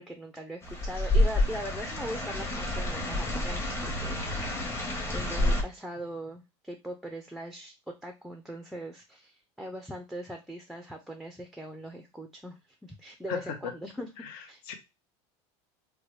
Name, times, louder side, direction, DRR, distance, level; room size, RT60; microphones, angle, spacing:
voice 1, 0.0-14.1 14.5-14.6, right 1 dB, ahead, 5 dB, 0.4 m, -41 dB
sound 1, 0.6-5.6, left 1 dB, 15° left, 0.9 m, -29 dB
voice 2, 13.3-13.7 14.2-14.7, left 8 dB, 65° left, 7 dB, 0.7 m, -37 dB
3.2 x 2.2 x 3.0 m, 0.24 s
supercardioid pair, 115°, 15 cm